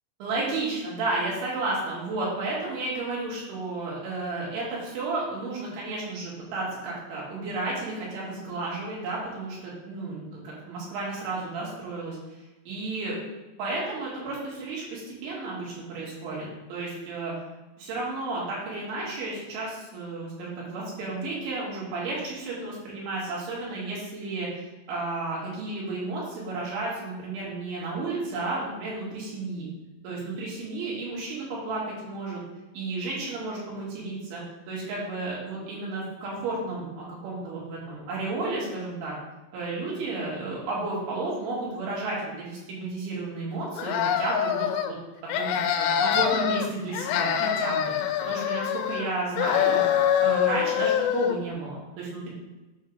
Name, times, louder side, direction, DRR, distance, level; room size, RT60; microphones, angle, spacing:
voice 1, 0.2-12.2 12.7-13.2 13.6-17.3 17.8-29.7 30.0-32.4 32.7-34.4 34.7-39.2 39.5-45.0 45.3-49.8 50.2-52.3, right 2 dB, 75° right, -5 dB, 4.7 m, -32 dB
sound 1, 43.8-44.9 45.3-46.7 46.9-49.1 49.4-51.4, left 9 dB, 85° left, 2.5 m, -25 dB
9.0 x 3.8 x 6.4 m, 1.1 s
omnidirectional pair, 5.5 m